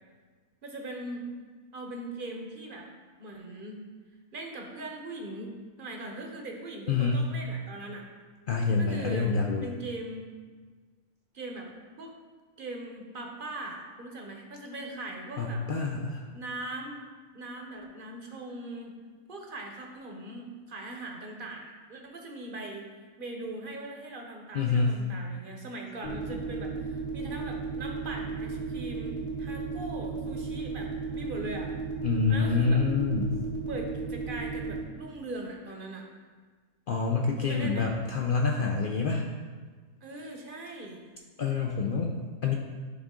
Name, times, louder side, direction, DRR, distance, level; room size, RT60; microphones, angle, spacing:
voice 1, 0.6-1.3 1.7-2.9 3.2-3.8 4.3-8.1 8.8-9.3 9.6-10.3 11.3-11.7 12.0-12.2 12.6-15.6 16.3-17.0 17.3-19.0 19.3-22.9 23.2-31.7 32.3-32.8 33.7-36.0 37.4-37.9 40.0-41.0, right 2 dB, 45° right, 1 dB, 0.8 m, -40 dB
voice 2, 6.9-7.2 8.5-9.7 15.4-16.2 24.5-24.9 32.0-33.4 36.9-39.2 41.4-42.1 42.4-42.5, left 4 dB, 80° left, 1 dB, 0.4 m, -26 dB
sound 1, 26.0-34.8, right 4 dB, 55° left, 1.5 m, -35 dB
10.5 x 3.7 x 3.7 m, 1.5 s
omnidirectional pair, 1.5 m